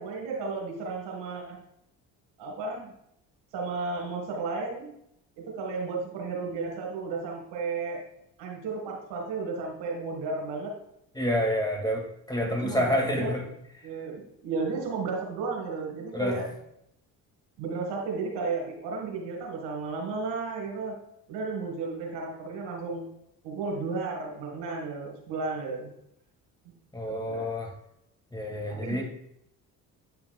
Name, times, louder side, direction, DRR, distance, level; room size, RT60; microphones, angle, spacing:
voice 1, 0.0-1.6 2.4-2.9 3.5-4.9 5.4-8.0 8.4-10.8 12.4-13.4 13.8-16.5 17.6-20.9 21.3-23.0 23.4-25.9 27.1-27.5 28.4-29.0, right 4 dB, 70° right, 1 dB, 1.9 m, -33 dB
voice 2, 11.2-13.4 16.1-16.4 26.9-27.7 28.3-29.0, left 1 dB, 10° left, 0 dB, 2.1 m, -28 dB
8.5 x 5.8 x 2.3 m, 0.76 s
hypercardioid pair, 55°, 44 cm